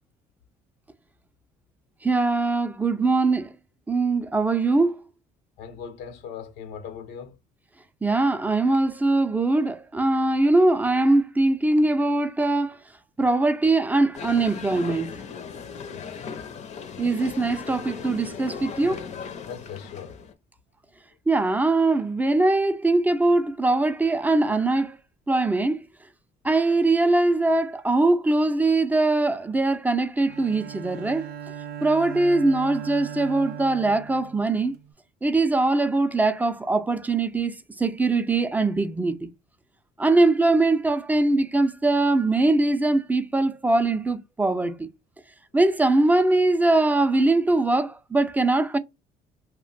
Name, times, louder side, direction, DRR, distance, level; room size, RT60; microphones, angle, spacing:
voice 1, 2.0-3.5 3.9-4.9 8.0-12.8 13.2-15.2 17.0-19.1 21.3-25.0 25.3-25.8 26.4-31.3 31.8-34.8 35.2-39.3 40.0-44.9 45.5-48.8, right 2 dB, 10° right, 0.3 m, -22 dB
voice 2, 5.6-7.4 15.9-16.4 19.5-20.3, left 7 dB, 85° left, 0.7 m, -40 dB
sound 1, 14.1-20.3, left 6 dB, 45° left, 0.5 m, -37 dB
Bowed string instrument, 30.3-34.9, right 9 dB, 70° right, 0.5 m, -38 dB
2.5 x 2.1 x 3.8 m
cardioid pair, 110°, 17 cm